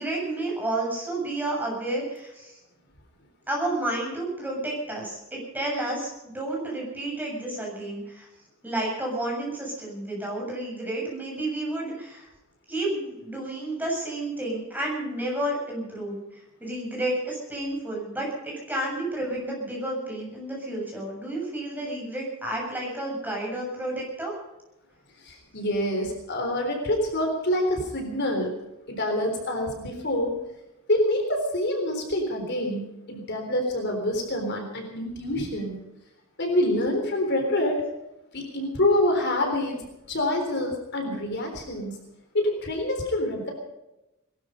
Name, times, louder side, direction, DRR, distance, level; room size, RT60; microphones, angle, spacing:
voice 1, 0.0-2.5 3.5-8.3 8.6-12.3 12.7-24.3, right 1 dB, 10° right, -2 dB, 7.4 m, -31 dB
voice 2, 25.2-28.5 28.9-30.4 30.9-35.8 36.4-37.8 38.3-39.8 40.1-42.0 42.3-43.5, left 1 dB, 55° left, 3 dB, 3.8 m, -26 dB
21.0 x 12.5 x 5.5 m, 0.93 s
head